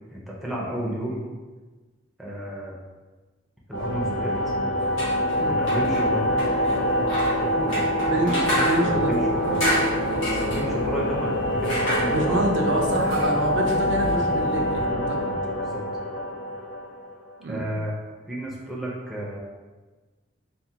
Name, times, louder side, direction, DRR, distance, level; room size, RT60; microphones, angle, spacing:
voice 1, 0.1-1.2 2.2-2.7 3.7-4.5 5.4-6.4 7.4-7.9 8.2-9.6 10.2-12.4 13.7-13.8 15.6-15.8 17.5-18.0 18.3-19.4, right 1 dB, ahead, -5 dB, 0.5 m, -32 dB
sound 1, 3.7-17.3, equal, 60° left, 0.6 m, -25 dB
sound 2, 4.8-14.9, equal, 85° left, 1.1 m, -32 dB
voice 2, 8.0-8.4 8.7-9.6 12.1-15.4 17.4-17.7, right 1 dB, 65° right, 0 dB, 0.4 m, -27 dB
3.4 x 2.1 x 2.7 m, 1.3 s
head